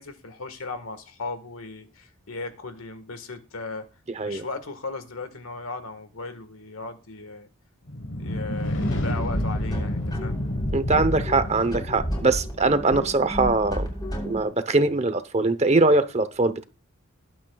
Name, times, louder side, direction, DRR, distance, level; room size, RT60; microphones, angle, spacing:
voice 1, 0.0-3.9 4.2-7.5 8.2-10.4, left 3 dB, 80° left, 1.6 m, -37 dB
sound 1, 7.9-12.7, left 1 dB, 60° left, 1.4 m, -29 dB
sound 2, 8.8-14.4, equal, 20° left, 4.5 m, -32 dB
voice 2, 10.7-13.9 14.2-16.6, right 3 dB, 30° right, 0.9 m, -22 dB
21.0 x 8.7 x 2.4 m
head